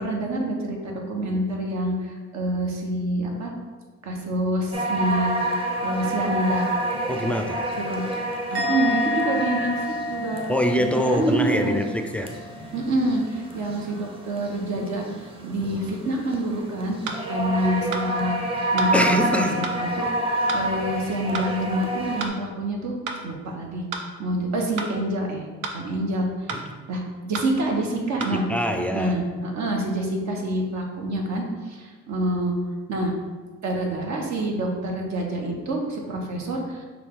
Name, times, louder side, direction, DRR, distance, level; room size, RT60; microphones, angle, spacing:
voice 1, 0.0-3.5 4.0-5.5 5.8-6.6 7.8-8.0 8.5-10.4 10.8-11.8 12.7-18.4 18.7-20.1 20.5-22.9 23.2-23.9 24.2-25.4 25.7-26.5 26.9-28.4 28.9-32.5 32.9-33.1 33.6-36.9, right 1 dB, 65° right, 0 dB, 1.0 m, -27 dB
sound 1, 4.7-22.3, right 1 dB, 20° right, 0.7 m, -29 dB
voice 2, 7.1-7.8 8.5-8.6 10.5-12.4 15.6-15.9 18.9-19.7 26.5-26.8 28.3-29.2, equal, 5° left, 5 dB, 0.3 m, -25 dB
Musical instrument, 8.5-11.9 12.2-12.6, left 2 dB, 40° right, 1.3 m, -30 dB
sound 2, 17.0-17.2 17.9-18.1 18.8-18.9 19.6-19.8 20.5-20.7 21.3-21.5 22.2-22.4 23.1-23.2 23.9-24.1 24.8-24.9 25.6-25.8 26.5-26.7 27.3-27.5 28.2-28.4, right 4 dB, 85° right, 0.6 m, -31 dB
6.2 x 2.3 x 3.6 m, 1.3 s
cardioid pair, 90°, 30 cm